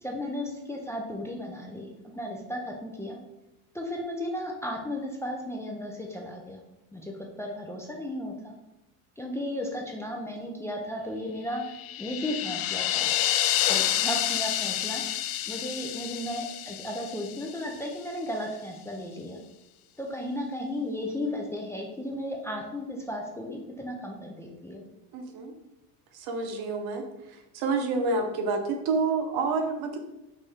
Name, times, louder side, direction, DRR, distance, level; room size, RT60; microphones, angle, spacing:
voice 1, 0.0-3.2 3.7-6.6 6.9-8.5 9.2-13.1 13.7-15.0 15.5-19.4 20.0-24.8, left 1 dB, 5° left, 0 dB, 0.5 m, -35 dB
sound 1, 11.6-17.8, left 12 dB, 60° left, 0.5 m, -29 dB
voice 2, 25.1-25.5 26.1-27.0 27.3-30.0, right 3 dB, 60° right, 5 dB, 1.0 m, -28 dB
5.3 x 2.8 x 3.5 m, 0.97 s
supercardioid pair, 105°, 42 cm